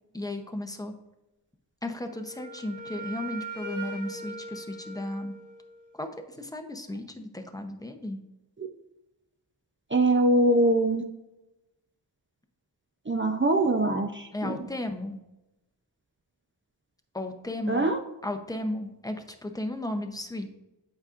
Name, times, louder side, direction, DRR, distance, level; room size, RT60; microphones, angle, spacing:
voice 1, 0.1-0.9 1.8-5.3 5.9-6.1 6.4-8.2 14.3-15.2 17.1-17.9 18.2-20.5, left 1 dB, 10° left, 6 dB, 0.7 m, -34 dB
Wind instrument woodwind instrument, 2.0-5.9, right 2 dB, 45° right, 1.3 m, -40 dB
voice 2, 9.9-11.0 13.1-14.6 17.7-18.0, right 2 dB, 30° right, 4 dB, 0.5 m, -23 dB
8.0 x 5.1 x 2.5 m, 0.96 s
wide cardioid pair, 40°, 43 cm